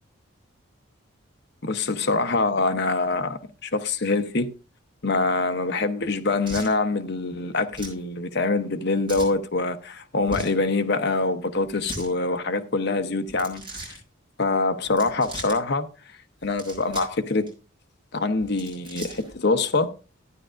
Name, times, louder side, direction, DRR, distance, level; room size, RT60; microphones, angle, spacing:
voice 1, 1.6-4.5 5.0-13.6 14.4-15.9 16.4-17.5 18.1-19.9, left 3 dB, 50° left, 0.8 m, -24 dB
sound 1, 6.4-6.7 7.7-8.0 9.1-9.4 10.2-10.6 11.7-12.1 13.3-14.0 14.9-15.6 16.4-17.2 17.5-17.6 18.4-19.3, right 1 dB, 20° right, 5.5 m, -38 dB
13.0 x 10.0 x 2.5 m
head